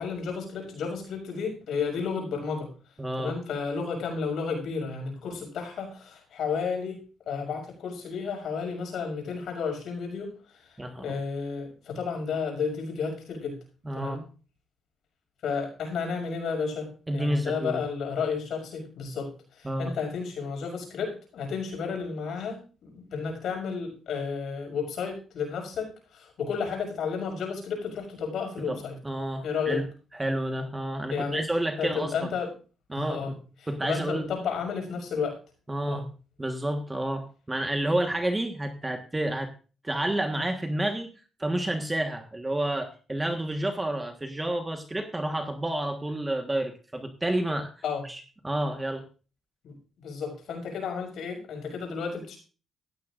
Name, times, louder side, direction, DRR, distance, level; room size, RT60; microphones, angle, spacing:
voice 1, 0.0-2.7 3.2-7.0 7.3-13.6 13.9-14.2 15.4-29.0 29.4-29.8 31.1-31.4 31.8-32.5 32.9-33.3 33.8-35.4 35.9-36.0 47.8-48.0 49.6-52.4, left 5 dB, 70° left, 3 dB, 6.3 m, -32 dB
voice 2, 3.0-3.3 10.8-11.2 13.8-14.2 17.1-17.8 19.6-19.9 28.7-29.8 30.1-32.3 32.9-33.4 33.7-34.3 35.7-36.1 36.4-39.5 39.8-41.1 41.4-47.7 48.0-49.1, right 1 dB, 15° right, 5 dB, 1.4 m, -30 dB
16.0 x 13.0 x 2.6 m, 0.36 s
cardioid pair, 90°, 0 cm